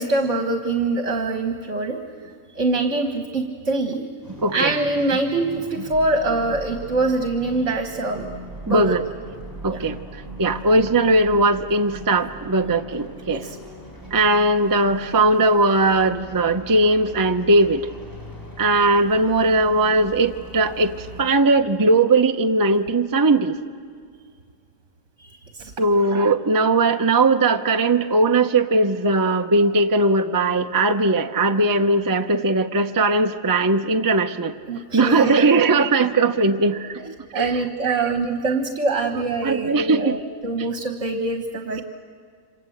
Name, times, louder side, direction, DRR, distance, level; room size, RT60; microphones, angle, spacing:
voice 1, 0.0-2.0 2.6-4.0 4.5-8.3 8.7-9.0 9.7-9.8 13.3-13.6 25.2-25.7 34.6-35.3 36.6-36.7 37.3-41.8, right 2 dB, 60° right, 5 dB, 1.8 m, -24 dB
sound 1, 4.2-21.2, right 2 dB, 15° left, 4.7 m, -40 dB
voice 2, 4.4-4.7 8.7-9.0 9.6-10.0 10.4-13.4 14.1-17.9 18.6-23.6 25.8-34.6 34.9-37.6 37.9-38.1 39.4-40.2, right 2 dB, 20° right, 6 dB, 0.7 m, -19 dB
28.0 x 26.0 x 8.0 m, 2.1 s
omnidirectional pair, 1.4 m